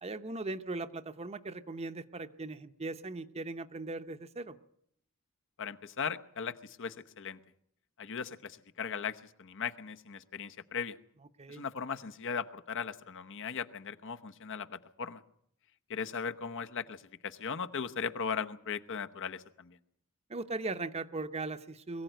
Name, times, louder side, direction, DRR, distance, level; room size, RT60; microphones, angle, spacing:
voice 1, 0.0-4.6 11.4-11.6 20.3-22.0, right 3 dB, 30° right, 10 dB, 0.8 m, -39 dB
voice 2, 5.6-7.4 8.0-11.0 11.5-15.2 15.9-19.8, left 6 dB, 60° left, 9 dB, 1.0 m, -38 dB
22.5 x 15.0 x 9.1 m, 0.71 s
head